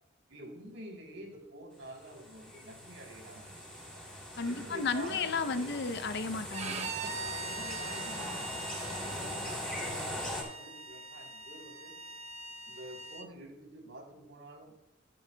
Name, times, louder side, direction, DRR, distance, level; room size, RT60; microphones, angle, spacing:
voice 1, 0.3-4.0 4.4-5.8 6.9-8.7 9.0-11.9 12.6-14.7, right 1 dB, 75° right, 0 dB, 3.3 m, -48 dB
sound 1, 1.8-10.4, left 1 dB, 5° left, 3.4 m, -41 dB
voice 2, 4.4-6.9, left 4 dB, 60° left, 11 dB, 0.6 m, -33 dB
Bowed string instrument, 6.5-13.3, right 3 dB, 35° right, 0.7 m, -42 dB
13.5 x 11.0 x 2.2 m, 0.94 s
head